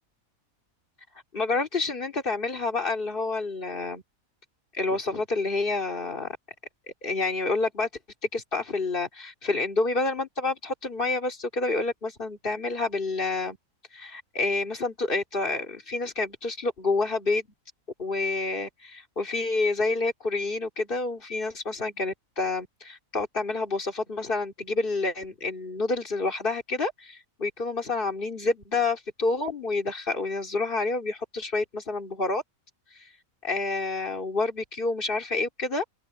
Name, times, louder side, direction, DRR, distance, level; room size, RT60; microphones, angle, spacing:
voice 1, 1.3-4.0 4.7-6.4 7.0-7.9 8.3-13.6 13.9-17.5 18.0-32.4 33.4-35.8, left 3 dB, 40° left, 3.1 m, -28 dB
open air
omnidirectional pair, 1.5 m